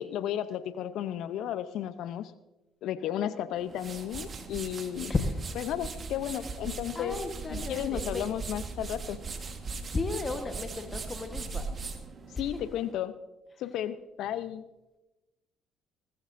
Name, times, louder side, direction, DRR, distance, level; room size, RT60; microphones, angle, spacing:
voice 1, 0.0-2.3 2.8-5.1 5.6-7.2 7.5-9.2 12.4-13.1 13.6-14.7, left 11 dB, 65° left, 14 dB, 0.7 m, -33 dB
sound 1, 3.5-12.9, right 4 dB, 40° right, 1.5 m, -39 dB
voice 2, 5.1-5.4 6.9-8.2 9.9-11.7 12.3-12.4, left 3 dB, 30° left, 6 dB, 1.3 m, -33 dB
19.0 x 14.0 x 2.7 m, 1.0 s
hypercardioid pair, 55°, 0 cm